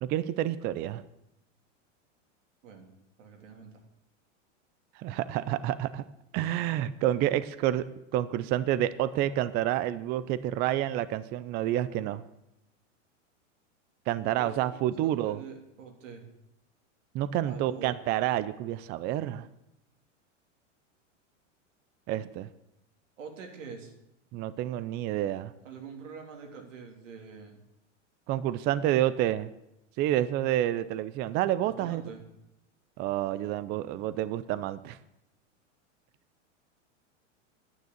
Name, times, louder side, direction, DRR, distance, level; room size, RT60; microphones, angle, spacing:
voice 1, 0.0-1.0 5.0-6.0 6.3-7.9 8.1-12.2 14.1-15.4 17.1-19.5 22.1-22.5 24.3-25.5 28.3-29.5 30.0-32.0 33.0-35.0, right 13 dB, 30° right, 15 dB, 0.4 m, -29 dB
voice 2, 3.2-3.7 14.2-16.3 17.4-18.0 23.2-23.9 25.6-27.6 31.6-32.2, right 5 dB, 85° right, 3 dB, 3.0 m, -45 dB
9.5 x 9.2 x 8.0 m, 0.85 s
hypercardioid pair, 125°, 37 cm